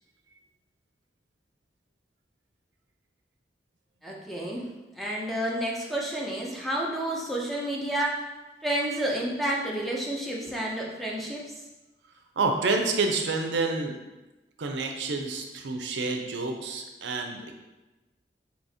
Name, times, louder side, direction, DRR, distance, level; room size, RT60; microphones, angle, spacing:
voice 1, 4.0-4.7 4.9-8.2 8.6-11.4, right 1 dB, ahead, -4 dB, 0.5 m, -30 dB
voice 2, 12.4-14.0 14.6-17.6, right 3 dB, 80° right, 3 dB, 0.5 m, -28 dB
4.8 x 2.8 x 2.7 m, 1.1 s
head